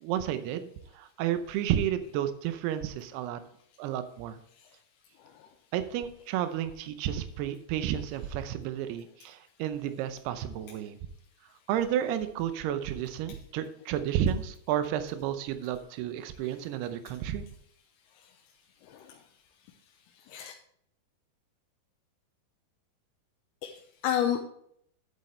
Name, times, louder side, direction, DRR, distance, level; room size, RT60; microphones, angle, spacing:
voice 1, 0.0-3.4 3.8-4.4 5.7-11.0 11.7-17.5, right 10 dB, 85° right, 10 dB, 2.8 m, -31 dB
voice 2, 18.8-19.2 20.3-20.5 23.6-24.4, left 10 dB, 80° left, 3 dB, 2.7 m, -32 dB
10.5 x 8.4 x 3.2 m, 0.68 s
omnidirectional pair, 4.6 m